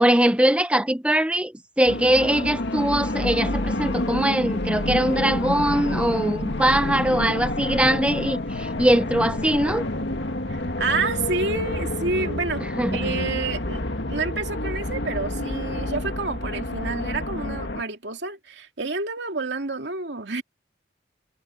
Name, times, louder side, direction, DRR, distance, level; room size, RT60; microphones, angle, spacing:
voice 1, 0.0-1.5 1.8-9.8 12.8-13.1, right 1 dB, 5° right, 0.9 m, -21 dB
sound 1, 1.9-17.8, left 1 dB, 90° left, 2.0 m, -28 dB
voice 2, 10.8-12.6 12.9-13.8 14.1-20.4, right 3 dB, 90° right, 2.6 m, -28 dB
head